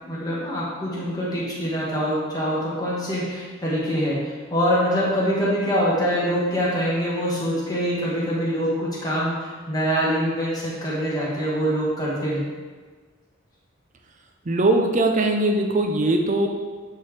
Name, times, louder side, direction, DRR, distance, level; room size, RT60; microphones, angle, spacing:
voice 1, 0.0-12.5, equal, 20° left, -6 dB, 1.4 m, -24 dB
voice 2, 14.5-16.5, right 2 dB, 35° right, 3 dB, 0.5 m, -20 dB
7.9 x 3.6 x 3.3 m, 1.5 s
head